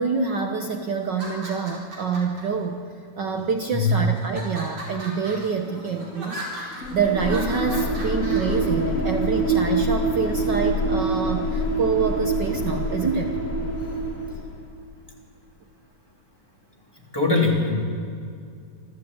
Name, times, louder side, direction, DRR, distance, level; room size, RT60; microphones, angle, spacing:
voice 1, 0.0-2.8 3.2-13.3, right 5 dB, 70° right, 4 dB, 1.0 m, -26 dB
sound 1, 1.0-2.4 3.1-3.7 4.2-8.6, right 1 dB, 45° right, 5.7 m, -37 dB
voice 2, 3.7-4.1 17.1-17.8, left 3 dB, 5° left, -1 dB, 3.1 m, -21 dB
sound 2, 6.8-14.6, right 2 dB, 25° left, 3.0 m, -25 dB
26.0 x 15.5 x 8.8 m, 2.3 s
omnidirectional pair, 3.7 m